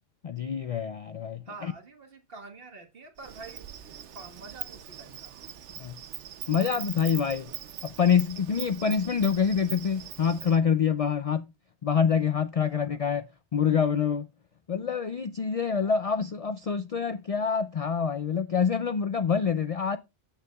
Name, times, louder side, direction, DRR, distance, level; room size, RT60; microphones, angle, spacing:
voice 1, 0.2-1.4 5.8-6.0 6.5-7.5 7.8-11.5 11.8-13.2 13.5-14.3 14.7-20.0, left 6 dB, 55° left, 0.4 m, -26 dB
voice 2, 1.4-3.7 4.1-5.3 12.6-12.8 15.8-16.0, right 3 dB, 55° right, 1.7 m, -46 dB
Insect, 3.2-10.6, right 10 dB, 85° right, 1.0 m, -41 dB
15.0 x 6.8 x 2.3 m
omnidirectional pair, 1.2 m